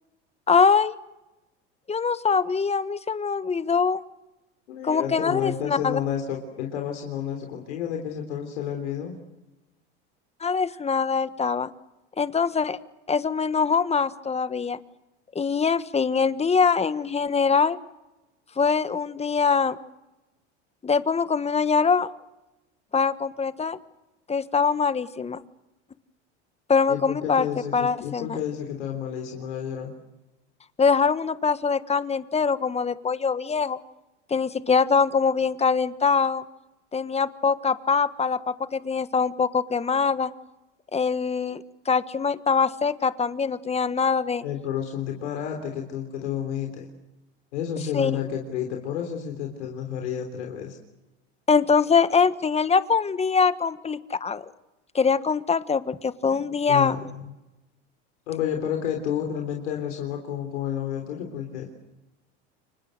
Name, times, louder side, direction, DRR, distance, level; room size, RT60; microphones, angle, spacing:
voice 1, 0.5-0.9 1.9-4.0 4.8-6.0 10.4-11.7 12.2-12.8 13.1-14.8 15.3-17.8 18.6-19.8 20.8-22.1 22.9-23.8 24.3-25.4 26.7-27.5 27.7-28.4 30.8-33.8 34.3-36.4 36.9-40.3 40.9-44.4 47.9-48.2 51.5-54.4 54.9-57.0, left 5 dB, 20° left, 14 dB, 1.3 m, -23 dB
voice 2, 4.7-9.1 26.9-29.9 44.4-46.9 47.5-50.8 56.7-57.3 58.3-61.7, left 9 dB, 85° left, 2 dB, 3.6 m, -30 dB
30.0 x 24.5 x 6.7 m, 1.0 s
hypercardioid pair, 100°, 35 cm